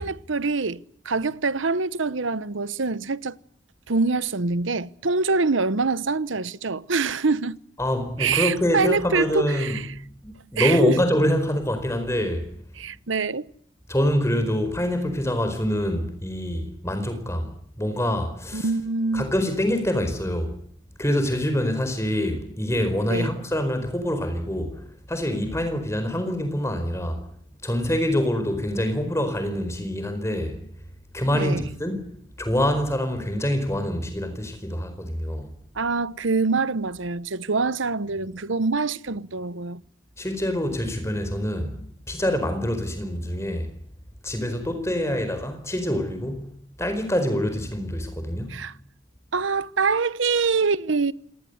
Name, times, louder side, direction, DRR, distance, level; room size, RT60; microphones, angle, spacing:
voice 1, 0.0-3.4 3.9-7.6 8.2-9.9 10.6-10.9 12.8-13.5 18.5-19.3 23.1-23.3 31.3-31.6 35.7-39.8 48.5-48.7 49.3-51.1, right 4 dB, 80° right, 1.0 m, -25 dB
voice 2, 7.8-9.8 10.2-12.5 13.9-18.7 19.1-20.5 21.0-27.2 27.6-30.6 31.1-32.1 32.4-35.5 40.2-41.8 42.1-43.7 44.2-46.5 46.8-48.6, equal, 15° left, 4.6 m, -25 dB
28.5 x 19.0 x 8.0 m
head